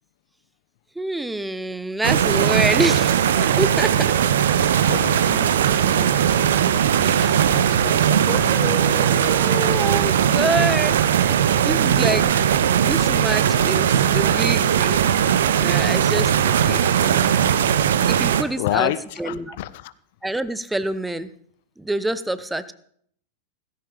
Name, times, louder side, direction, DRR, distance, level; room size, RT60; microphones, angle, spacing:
voice 1, 1.0-4.1 6.9-7.6 8.3-12.4 12.8-15.0 15.5-16.9 18.1-18.9 19.2-19.6 20.2-21.3 21.8-22.7, right 1 dB, 5° right, 14 dB, 0.7 m, -27 dB
sound 1, 2.0-18.4, right 9 dB, 60° right, 0.8 m, -19 dB
voice 2, 4.6-6.3 7.5-8.8 17.2-17.6 18.6-19.9, left 14 dB, 50° left, 17 dB, 0.5 m, -30 dB
17.0 x 15.0 x 3.4 m, 0.65 s
figure-of-eight pair, 90°, 0 cm